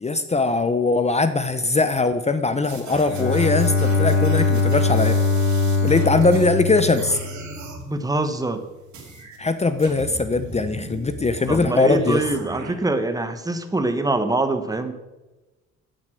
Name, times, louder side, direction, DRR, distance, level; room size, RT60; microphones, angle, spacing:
voice 1, 0.0-5.2 5.8-7.2 9.4-12.2, left 3 dB, 20° left, 11 dB, 0.6 m, -21 dB
sound 1, 2.6-6.6 6.9-7.8 8.9-9.4 9.8-12.7, right 3 dB, 65° right, 2.6 m, -38 dB
Bowed string instrument, 3.1-7.7, left 4 dB, 45° left, 3.9 m, -21 dB
voice 2, 7.9-8.6 11.5-14.9, right 2 dB, 10° right, 8 dB, 1.1 m, -24 dB
8.2 x 7.6 x 6.2 m, 1.1 s
cardioid pair, 90°, 30 cm